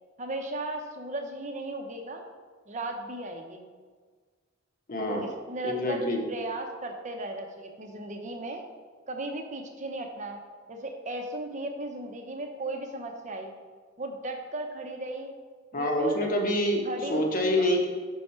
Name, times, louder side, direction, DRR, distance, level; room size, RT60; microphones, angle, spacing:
voice 1, 0.2-2.2 2.7-3.7 5.1-6.0 6.3-8.6 9.1-10.4 10.7-13.5 14.0-15.3 15.7-16.3 16.8-17.7, right 2 dB, 40° right, 4 dB, 0.7 m, -36 dB
voice 2, 4.9-5.3 5.6-6.2 15.7-16.8 17.1-17.9, left 1 dB, 45° left, 1 dB, 1.0 m, -26 dB
5.8 x 5.6 x 4.3 m, 1.6 s
head